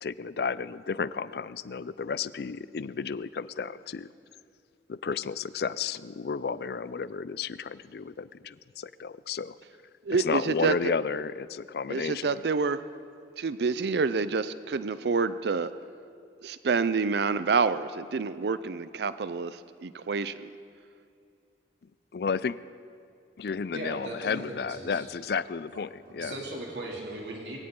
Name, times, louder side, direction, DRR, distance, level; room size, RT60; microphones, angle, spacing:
voice 1, 0.0-4.1 4.9-9.6 10.2-12.4 22.1-22.6 23.4-26.4, left 5 dB, 60° left, 17 dB, 0.4 m, -32 dB
voice 2, 10.0-10.9 11.9-12.8 13.4-15.7 16.4-20.5, right 4 dB, 65° right, 14 dB, 0.5 m, -28 dB
voice 3, 23.7-25.1 26.1-27.6, right 1 dB, 85° right, -2 dB, 2.7 m, -38 dB
21.5 x 16.5 x 3.8 m, 2.4 s
head